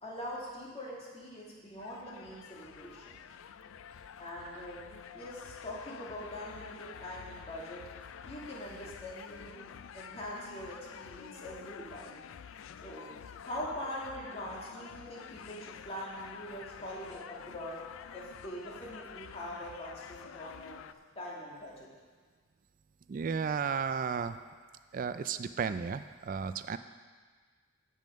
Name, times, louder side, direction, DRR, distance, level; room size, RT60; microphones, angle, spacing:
voice 1, 0.0-3.2 4.2-4.8 5.1-7.8 8.3-12.2 12.8-13.1 13.4-17.8 18.1-20.8 21.2-21.9, equal, 30° left, -5 dB, 2.3 m, -43 dB
sound 1, 1.8-20.9, left 8 dB, 80° left, 0.4 m, -49 dB
voice 2, 23.1-24.4 24.9-26.8, right 6 dB, 45° right, 12 dB, 0.3 m, -33 dB
15.0 x 5.7 x 5.2 m, 1.5 s
head